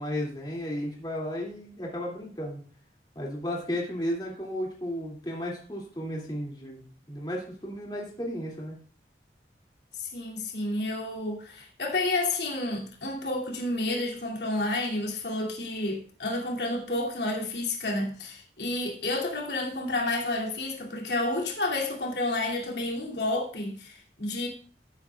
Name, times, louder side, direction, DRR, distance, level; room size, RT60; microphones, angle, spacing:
voice 1, 0.0-2.6 3.1-8.8, equal, 25° left, 2.6 m, -34 dB
voice 2, 10.0-24.5, left 2 dB, 75° left, 2.7 m, -30 dB
16.5 x 8.3 x 2.4 m
head